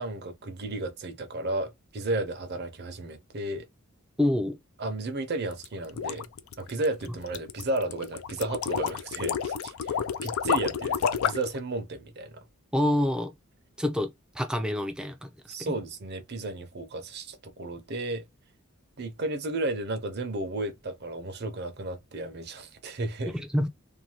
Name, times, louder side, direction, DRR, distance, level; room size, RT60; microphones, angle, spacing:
voice 1, 0.0-3.6 4.8-6.3 6.6-12.4 15.5-18.2 19.0-23.4, right 2 dB, 50° right, 0.6 m, -33 dB
voice 2, 4.2-4.6 12.7-13.3 13.8-14.1 14.3-15.3 15.6-15.8 23.3-23.7, left 1 dB, 5° right, 0.4 m, -27 dB
sound 1, 5.5-11.6, left 7 dB, 70° left, 0.3 m, -30 dB
2.6 x 2.2 x 2.9 m
head